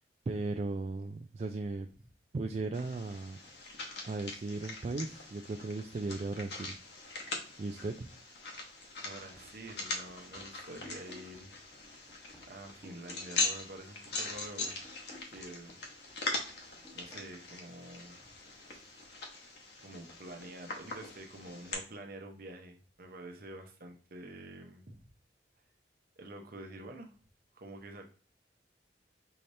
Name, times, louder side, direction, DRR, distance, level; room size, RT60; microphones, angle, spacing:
voice 1, 0.3-1.9 2.3-3.4 4.0-6.7 7.6-8.1, right 3 dB, 40° right, 4 dB, 0.3 m, -36 dB
sound 1, 2.7-21.7, left 3 dB, 65° left, 1.1 m, -41 dB
voice 2, 9.0-11.5 11.9-12.2 12.5-14.7 15.3-15.8 16.3-16.5 16.9-18.2 18.7-19.0 19.8-25.0 26.2-27.1 27.5-28.0, right 1 dB, 55° right, 4 dB, 0.8 m, -48 dB
sound 2, 9.4-13.8 14.1-17.4, left 1 dB, 5° left, 1.1 m, -58 dB
5.7 x 3.3 x 2.7 m, 0.39 s
head